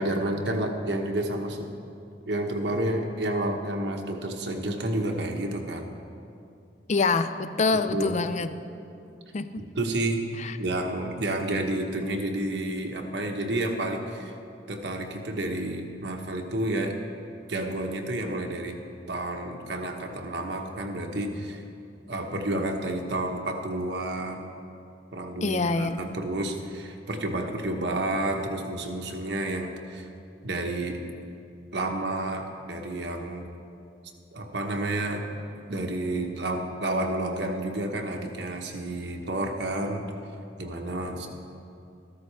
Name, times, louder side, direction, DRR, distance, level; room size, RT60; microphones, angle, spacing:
voice 1, 0.0-1.7 2.3-5.9 7.9-8.1 9.6-10.2 10.6-14.3 14.7-17.0 17.5-18.8 19.1-21.6 22.1-24.5 25.1-30.1 30.4-31.0 31.7-33.4 34.3-35.2 35.7-40.0 40.6-41.3, right 1 dB, 75° right, 3 dB, 1.2 m, -30 dB
voice 2, 6.9-8.5 9.3-9.6 10.4-10.6 25.4-26.0, left 3 dB, 40° left, 11 dB, 0.4 m, -25 dB
13.5 x 13.5 x 3.3 m, 2.6 s
head